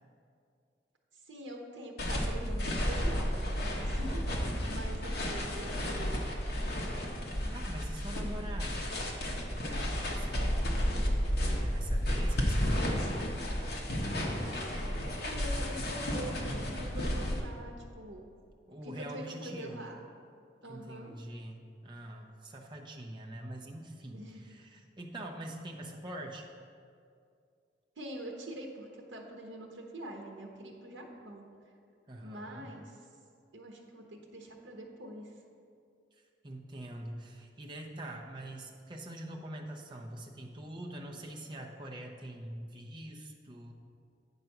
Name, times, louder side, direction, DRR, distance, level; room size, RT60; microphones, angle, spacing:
voice 1, 1.3-6.3 15.2-18.2 18.8-20.0 20.6-21.1 24.1-24.5 28.0-31.4 32.2-33.0 33.5-35.3, right 1 dB, 80° right, 1 dB, 0.9 m, -44 dB
sound 1, 2.0-17.4, equal, 60° left, 1.0 m, -32 dB
voice 2, 7.5-9.0 9.7-11.2 11.6-13.3 18.7-19.8 20.7-26.5 32.1-32.7 36.1-43.7, right 1 dB, 25° right, 0 dB, 0.7 m, -44 dB
8.9 x 4.1 x 5.8 m, 2.3 s
head